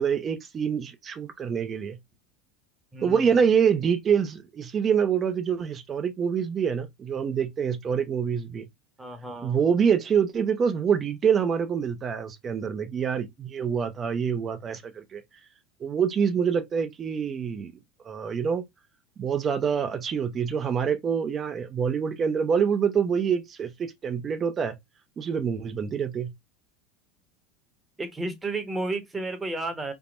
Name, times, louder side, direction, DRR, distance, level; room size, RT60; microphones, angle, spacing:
voice 1, 0.0-2.0 3.0-8.7 9.4-15.2 15.8-17.7 18.1-18.6 19.2-24.8 25.2-26.3, right 7 dB, 30° right, 0.5 m, -26 dB
voice 2, 2.9-3.4 9.0-9.6 28.0-29.9, right 2 dB, 15° right, 0.9 m, -32 dB
3.4 x 2.1 x 2.4 m
hypercardioid pair, 100°, 0 cm